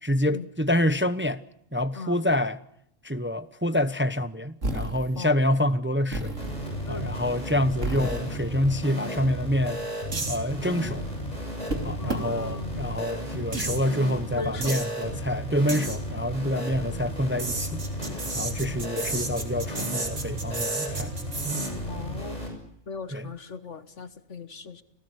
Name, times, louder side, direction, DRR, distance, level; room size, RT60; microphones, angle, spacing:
voice 1, 0.0-1.4 1.7-2.6 3.0-6.4 6.9-9.8 10.3-11.1 11.8-17.8 18.3-21.1 21.4-21.7 23.1-23.3, left 1 dB, 10° right, 0.8 m, -27 dB
sound 1, 4.6-5.2 6.1-6.7 7.8-8.4 9.7-9.8 10.1-10.4 11.7-11.8 12.1-12.2 13.5-13.8 14.6-14.9 15.7-16.0 17.4-21.7, right 2 dB, 65° right, 3.8 m, -32 dB
sound 2, 6.4-22.5, equal, 30° left, 8.2 m, -34 dB
voice 2, 12.0-12.8 14.3-14.8 21.9-22.4 22.9-24.8, left 4 dB, 60° left, 1.6 m, -38 dB
29.5 x 19.0 x 8.4 m
omnidirectional pair, 1.4 m